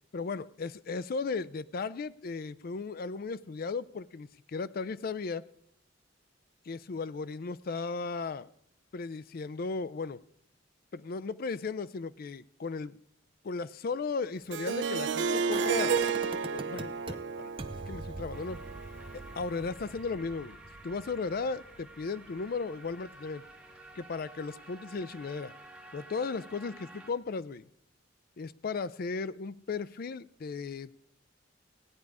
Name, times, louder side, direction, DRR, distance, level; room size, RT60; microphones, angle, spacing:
voice 1, 0.1-5.4 6.7-8.5 8.9-10.2 10.9-13.0 13.4-16.0 16.5-17.5 17.9-18.6 19.3-20.6 20.8-23.4 24.0-25.5 25.9-27.7 28.4-31.1, left 4 dB, 50° left, 16 dB, 0.4 m, -36 dB
Harp, 14.5-19.5, right 5 dB, 65° right, 0.4 m, -32 dB
sound 1, 15.5-17.1 17.6-23.4 23.7-23.8, right 2 dB, 30° right, 0.7 m, -43 dB
sound 2, 18.3-27.1, right 1 dB, 5° right, 1.3 m, -51 dB
16.0 x 9.3 x 4.8 m, 0.72 s
head